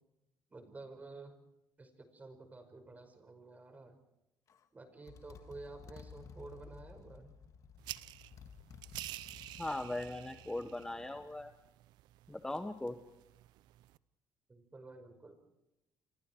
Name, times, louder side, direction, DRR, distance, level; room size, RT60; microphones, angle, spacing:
voice 1, 0.5-1.4 1.8-4.0 4.7-7.3 14.5-15.3, right 3 dB, 20° right, 7 dB, 5.4 m, -51 dB
Motorcycle, 4.5-4.7 5.1-11.2, left 6 dB, 50° left, 2.1 m, -55 dB
sound 1, 7.8-14.0, right 16 dB, 90° right, 0.7 m, -50 dB
voice 2, 9.6-11.5 12.3-13.0, left 1 dB, 10° left, 8 dB, 1.2 m, -39 dB
29.5 x 24.5 x 4.6 m, 0.90 s
cardioid pair, 115°, 7 cm